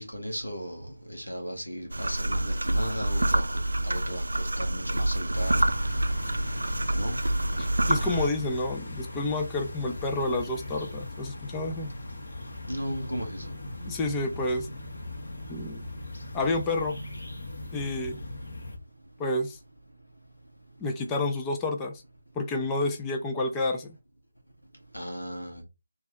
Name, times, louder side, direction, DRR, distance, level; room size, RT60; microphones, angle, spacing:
voice 1, 0.0-3.4 3.8-5.5 6.9-7.2 12.7-13.5 24.9-25.6, equal, 90° left, 1.7 m, -36 dB
sound 1, 1.9-8.3, right 1 dB, 70° right, 0.4 m, -27 dB
sound 2, 5.3-18.8, left 2 dB, 60° left, 1.7 m, -39 dB
voice 2, 7.6-11.9 13.8-14.7 15.5-15.8 16.3-17.0 17.7-18.2 19.2-19.6 20.8-22.0 22.3-24.0, left 2 dB, 10° left, 0.4 m, -29 dB
3.3 x 2.8 x 3.4 m
figure-of-eight pair, 160°, 0 cm